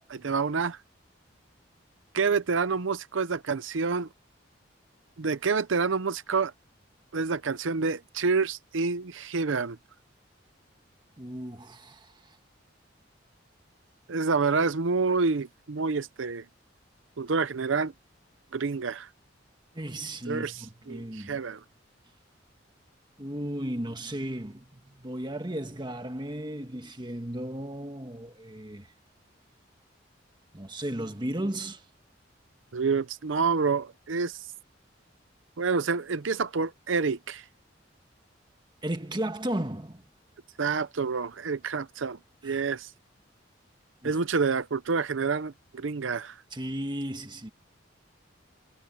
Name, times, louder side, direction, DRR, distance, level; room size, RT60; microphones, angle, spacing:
voice 1, 0.1-0.8 2.1-4.1 5.2-6.5 7.1-9.8 14.1-16.4 17.2-17.9 18.5-19.1 20.3-21.6 32.7-34.4 35.6-37.4 40.6-42.9 44.0-46.3, right 4 dB, 90° right, 0.7 m, -28 dB
voice 2, 11.2-12.4 19.7-21.4 23.2-28.9 30.5-31.8 38.8-40.0 42.4-42.6 44.0-44.2 46.5-47.5, right 1 dB, 25° right, 1.6 m, -35 dB
head